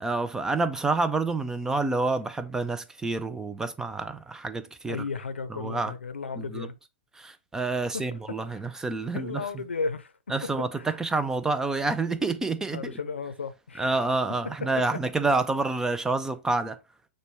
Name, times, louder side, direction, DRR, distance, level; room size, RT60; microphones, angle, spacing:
voice 1, 0.0-5.0 5.5-5.9 6.4-6.7 7.2-9.5 10.3-12.9 13.8-16.8, right 3 dB, 10° right, 0.4 m, -28 dB
voice 2, 4.9-6.8 7.8-8.6 9.1-10.1 10.4-10.9 12.7-14.0 14.6-14.7, left 4 dB, 90° left, 0.6 m, -35 dB
6.4 x 2.2 x 3.3 m
hypercardioid pair, 115°, 6 cm